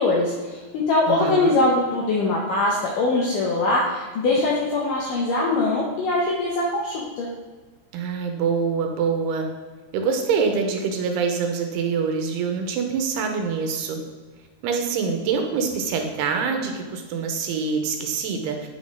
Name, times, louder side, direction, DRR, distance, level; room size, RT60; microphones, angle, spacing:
voice 1, 0.0-7.3, left 2 dB, 75° left, -3 dB, 1.9 m, -22 dB
voice 2, 1.1-1.6 7.9-9.5 9.9-14.0 14.6-18.7, right 5 dB, 85° right, 4 dB, 2.6 m, -25 dB
9.1 x 4.2 x 3.5 m, 1.3 s
omnidirectional pair, 4.7 m